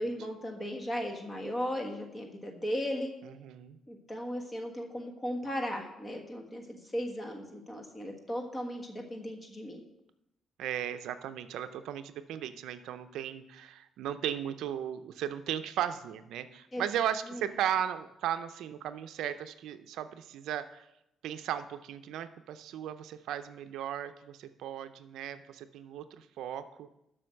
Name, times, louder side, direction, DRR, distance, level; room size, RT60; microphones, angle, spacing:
voice 1, 0.0-3.1 3.9-9.8 16.7-16.8, equal, 20° left, 3 dB, 1.5 m, -36 dB
voice 2, 3.2-3.8 10.6-20.9 21.2-26.9, right 10 dB, 80° right, 11 dB, 0.5 m, -36 dB
7.7 x 6.2 x 6.3 m, 0.87 s
cardioid pair, 120°, 0 cm